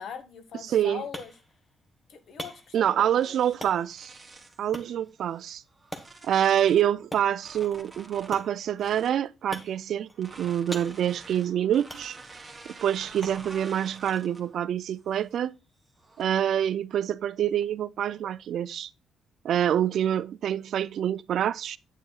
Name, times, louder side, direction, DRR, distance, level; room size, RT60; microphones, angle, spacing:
voice 1, 0.0-1.3 2.1-3.4, left 7 dB, 65° left, 1.2 m, -41 dB
sound 1, 0.5-16.1, equal, 10° left, 1.3 m, -47 dB
voice 2, 0.7-1.0 2.7-4.1 4.6-5.6 6.2-12.2 12.7-15.5 16.2-18.9 19.4-21.8, right 10 dB, 70° right, 0.4 m, -26 dB
sound 2, 3.0-4.7 5.3-6.9 7.3-9.2 10.1-14.6 15.0-15.3 16.0-16.5, right 3 dB, 20° right, 1.8 m, -49 dB
9.1 x 8.3 x 2.3 m
cardioid pair, 90°, 0 cm